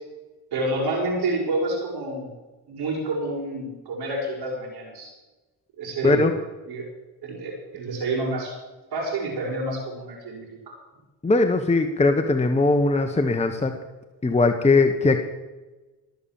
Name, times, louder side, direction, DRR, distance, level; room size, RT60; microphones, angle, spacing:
voice 1, 0.5-2.3 2.7-5.1 5.8-6.4 6.7-6.9 7.2-8.5 8.9-10.7, right 2 dB, 70° right, -3 dB, 5.5 m, -28 dB
voice 2, 11.2-13.7 14.2-15.2, left 3 dB, 15° left, 5 dB, 1.2 m, -20 dB
20.5 x 7.0 x 7.4 m, 1.1 s
cardioid pair, 85°, 40 cm